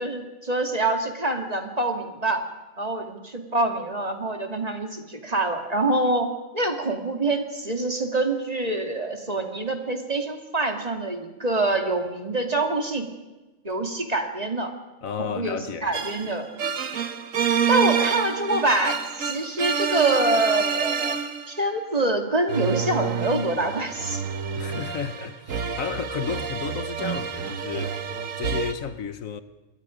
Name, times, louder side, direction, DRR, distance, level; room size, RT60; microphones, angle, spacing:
voice 1, 0.0-2.4 2.8-6.3 6.5-13.1 13.6-14.7 15.2-16.5 17.7-21.2 21.5-24.2, right 2 dB, 30° right, 2.4 m, -25 dB
voice 2, 15.0-15.9 24.5-28.0 28.4-29.4, left 7 dB, 75° left, 1.4 m, -32 dB
sound 1, 15.9-21.6 22.5-28.7, right 6 dB, 70° right, 1.5 m, -28 dB
27.5 x 22.0 x 5.1 m
omnidirectional pair, 1.4 m